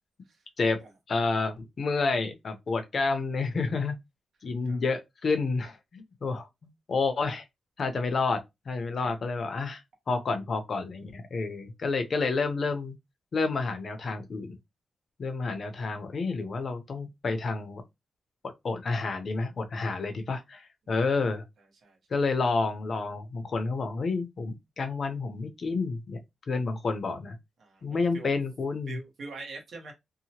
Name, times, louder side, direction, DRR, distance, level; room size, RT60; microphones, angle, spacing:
voice 1, 1.1-3.9 4.4-6.5 6.9-7.4 7.8-8.4 8.7-9.8 10.1-13.0 13.3-14.5 15.2-17.8 18.6-21.4 22.1-26.2 26.5-27.4 27.8-29.0, left 4 dB, 50° left, 0.6 m, -29 dB
voice 2, 27.6-28.3 28.9-29.9, right 3 dB, 70° right, 1.0 m, -43 dB
2.8 x 2.1 x 2.8 m
wide cardioid pair, 125°, 0 cm